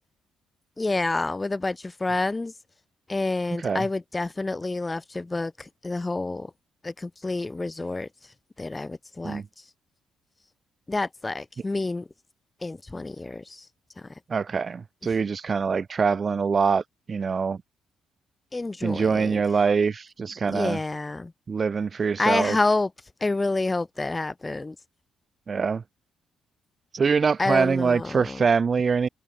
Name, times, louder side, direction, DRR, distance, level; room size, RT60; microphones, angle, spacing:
voice 1, 0.8-2.5 3.1-6.5 6.8-8.1 8.6-9.4 10.9-12.1 12.6-13.6 18.5-19.4 20.5-21.3 22.2-22.9 23.2-24.8 27.4-28.4, left 2 dB, 20° left, 0.6 m, -28 dB
voice 2, 14.3-17.6 18.8-20.8 21.5-22.6 25.5-25.8 26.9-29.1, right 5 dB, 40° right, 0.7 m, -24 dB
cardioid pair, 90°, 0 cm